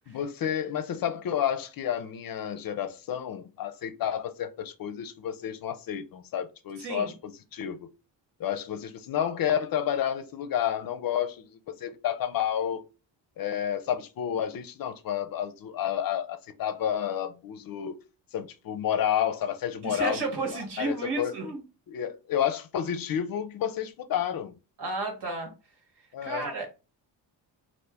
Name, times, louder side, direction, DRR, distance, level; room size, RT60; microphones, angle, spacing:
voice 1, 0.1-7.8 8.4-12.8 13.4-18.0 18.3-20.2 20.8-21.4 21.9-24.5 26.1-26.5, left 9 dB, 50° left, 0.5 m, -30 dB
voice 2, 6.8-7.1 19.8-21.6 24.8-25.5 26.2-26.7, right 3 dB, 65° right, 1.4 m, -32 dB
2.8 x 2.6 x 3.4 m
cardioid pair, 110°, 44 cm